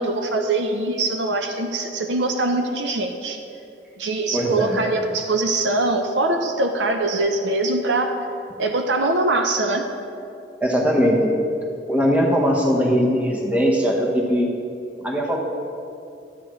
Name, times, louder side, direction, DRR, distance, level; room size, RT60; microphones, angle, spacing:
voice 1, 0.0-3.4 4.0-8.1 8.6-9.8, right 2 dB, 65° right, 5 dB, 0.7 m, -22 dB
voice 2, 4.3-4.8 10.6-11.3 11.9-14.5 15.0-15.4, equal, 10° right, -2 dB, 1.1 m, -20 dB
12.5 x 9.8 x 3.1 m, 2.5 s
head